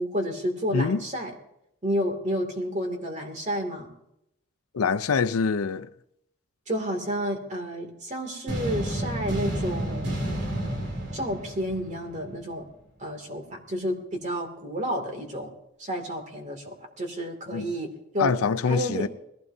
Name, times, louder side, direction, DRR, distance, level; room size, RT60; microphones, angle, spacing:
voice 1, 0.0-1.3 1.8-3.9 6.7-10.4 11.1-12.7 13.0-15.5 15.8-18.4 18.7-19.1, equal, 35° right, 2.4 m, -30 dB
voice 2, 0.7-1.0 4.7-5.9 17.5-17.7 18.2-19.1, left 5 dB, 85° left, 0.5 m, -25 dB
sound 1, 8.5-12.4, right 1 dB, 55° right, 3.0 m, -31 dB
21.0 x 16.0 x 2.7 m
head